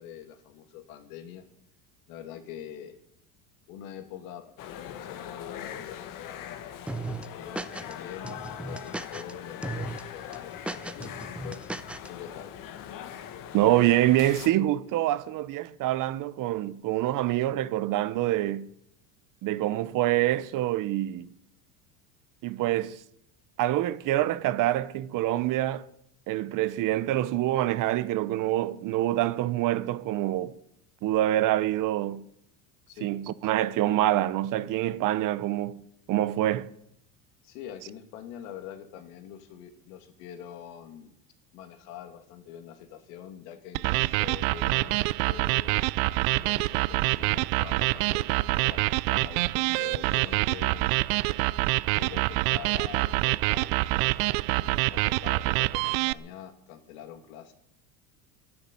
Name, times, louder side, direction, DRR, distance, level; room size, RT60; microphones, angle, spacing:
voice 1, 0.0-1.5 2.1-3.0 3.7-6.8 7.3-11.7 12.1-12.5 32.9-33.1 37.4-41.2 41.5-45.9 46.3-50.9 52.0-54.3 54.6-57.5, left 10 dB, 80° left, 2.6 m, -45 dB
sound 1, 4.6-14.5, left 10 dB, 50° left, 1.7 m, -41 dB
sound 2, 6.9-7.9 8.2-9.3 9.6-10.0 10.3-12.1, right 2 dB, 5° right, 0.7 m, -36 dB
voice 2, 13.5-18.7 19.4-21.3 22.4-23.0 23.6-25.8 26.3-30.5 31.0-32.2 33.0-35.8 36.1-36.7, right 14 dB, 50° right, 0.9 m, -26 dB
sound 3, 43.7-56.1, right 21 dB, 80° right, 0.6 m, -26 dB
11.5 x 10.5 x 10.0 m
supercardioid pair, 125°, 41 cm